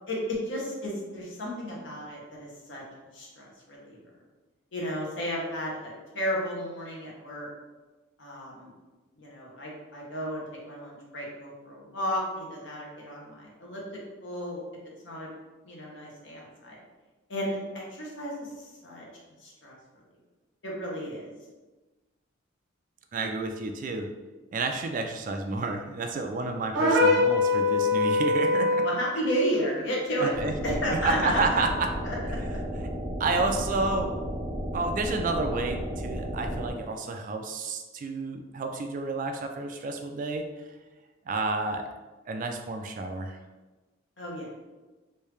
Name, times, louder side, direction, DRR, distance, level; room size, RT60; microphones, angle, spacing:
voice 1, 0.1-2.8 3.1-4.0 4.7-7.5 8.2-8.7 9.2-13.8 14.2-14.6 15.0-15.3 15.6-16.8 17.3-19.1 19.4-19.7 20.6-21.3 28.8-30.3 30.6-31.6 32.0-32.2 32.4-32.6 44.2-44.5, equal, 65° left, -3 dB, 1.0 m, -33 dB
voice 2, 23.1-24.1 24.5-28.9 30.2-31.9 33.2-34.1 34.7-40.7 41.3-41.9 42.3-43.4, right 3 dB, 40° right, 5 dB, 0.3 m, -30 dB
sound 1, 26.7-29.0, left 2 dB, 65° right, 1.1 m, -22 dB
sound 2, 30.3-36.7, equal, 10° left, 0.5 m, -33 dB
3.3 x 2.7 x 3.2 m, 1.2 s
head